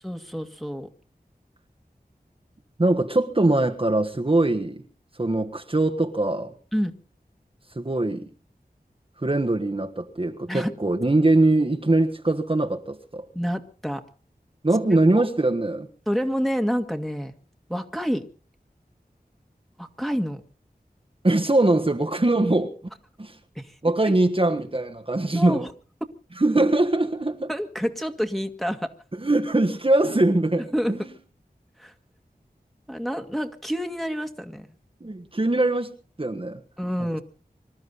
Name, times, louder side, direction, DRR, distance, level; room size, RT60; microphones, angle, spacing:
voice 1, 0.0-0.9 6.7-6.9 10.5-10.7 13.3-14.0 14.9-15.3 16.1-17.3 17.7-18.2 19.8-20.4 23.6-23.8 25.3-25.7 27.5-28.9 30.7-31.2 31.8-31.9 32.9-34.7 36.8-37.2, equal, ahead, 1.9 m, -28 dB
voice 2, 2.8-4.8 5.2-6.5 7.7-8.3 9.2-13.2 14.6-15.9 21.2-22.7 23.2-23.4 23.8-25.7 26.4-27.5 29.2-31.1 35.0-35.9 36.2-36.6, right 2 dB, 35° right, 1.3 m, -22 dB
25.0 x 13.0 x 4.1 m
wide cardioid pair, 60°, 16 cm